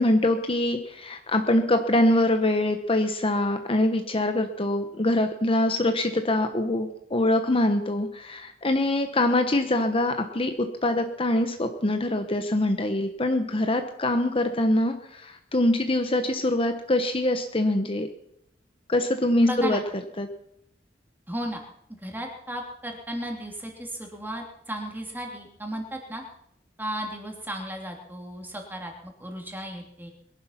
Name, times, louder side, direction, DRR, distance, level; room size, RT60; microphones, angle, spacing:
voice 1, 0.0-18.1 18.9-19.8 20.2-20.3, left 1 dB, 30° left, 7 dB, 1.1 m, -24 dB
voice 2, 19.4-19.8 21.3-21.6 22.0-26.2 26.8-30.1, right 1 dB, 10° right, 2 dB, 2.9 m, -34 dB
22.0 x 11.0 x 5.9 m, 0.76 s
head